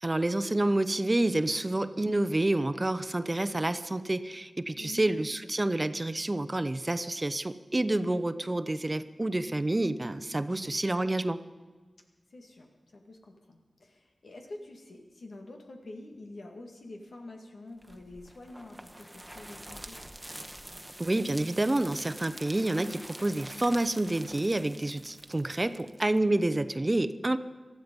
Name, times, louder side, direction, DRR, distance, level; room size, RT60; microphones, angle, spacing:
voice 1, 0.0-11.4 21.0-27.4, right 2 dB, 35° right, 13 dB, 0.7 m, -28 dB
voice 2, 4.7-5.1 10.3-10.8 12.3-20.0, left 2 dB, 85° left, 2 dB, 2.1 m, -47 dB
sound 1, 17.8-26.6, right 1 dB, 15° right, 1.1 m, -46 dB
18.5 x 13.0 x 5.4 m, 1.4 s
cardioid pair, 45°, 0 cm